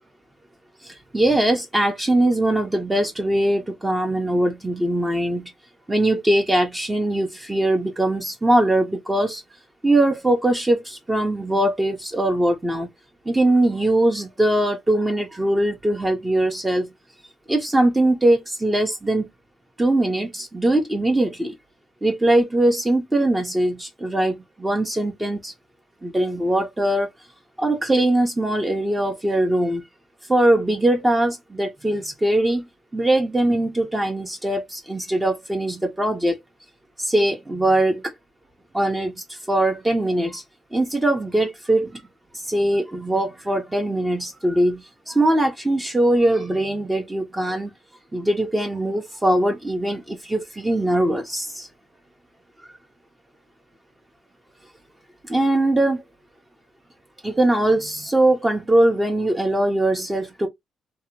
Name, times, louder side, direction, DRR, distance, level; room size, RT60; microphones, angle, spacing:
voice 1, 0.8-5.5 5.9-9.4 9.8-12.9 13.3-16.9 17.5-19.3 19.8-21.5 22.0-25.5 26.0-27.1 27.6-29.8 30.3-32.7 32.9-36.4 37.0-38.1 38.7-40.4 40.7-42.1 42.3-47.7 48.1-51.7 52.6-52.7 55.2-56.0 57.2-60.5, right 1 dB, 15° right, 0.5 m, -21 dB
2.7 x 2.1 x 2.6 m
cardioid pair, 90°, 0 cm